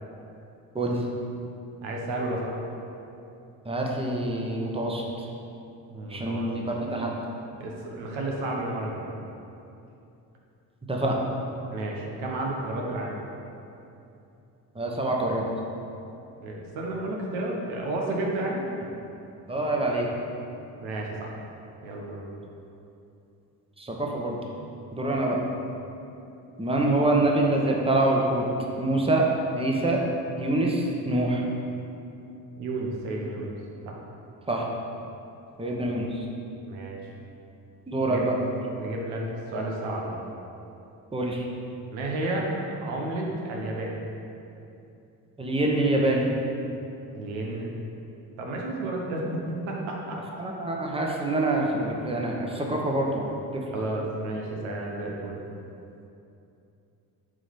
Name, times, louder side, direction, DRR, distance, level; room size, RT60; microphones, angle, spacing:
voice 1, 1.8-2.6 5.9-6.5 6.8-7.0 7.6-9.1 11.7-13.2 16.4-18.7 20.8-21.3 21.8-22.3 32.6-33.5 33.9-34.0 35.9-36.0 36.6-37.0 38.0-38.3 38.7-39.2 39.5-40.2 41.9-42.5 42.8-44.0 47.1-47.7 48.4-50.2 53.7-55.4, right 2 dB, 70° right, -1 dB, 1.0 m, -32 dB
voice 2, 3.6-5.0 6.1-7.2 10.9-11.2 14.7-15.4 19.5-20.1 23.8-24.4 24.9-25.4 26.6-28.5 28.8-29.3 29.5-30.0 30.4-31.4 34.5-34.7 35.6-36.2 37.9-38.3 41.1-41.5 45.4-46.3 50.4-53.6, right 2 dB, 10° right, -1 dB, 1.1 m, -25 dB
7.2 x 3.2 x 5.2 m, 2.7 s
hypercardioid pair, 45°, 49 cm